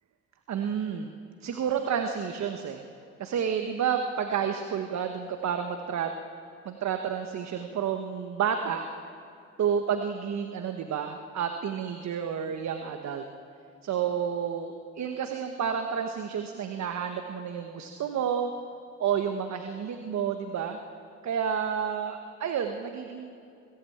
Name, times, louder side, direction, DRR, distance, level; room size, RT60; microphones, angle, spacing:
voice 1, 0.5-1.1 1.4-2.8 3.2-6.1 6.6-8.9 9.6-13.2 13.8-18.5 19.0-20.8 21.2-23.4, right 8 dB, 65° right, 5 dB, 1.4 m, -30 dB
21.0 x 15.5 x 8.7 m, 2.5 s
cardioid pair, 90°, 30 cm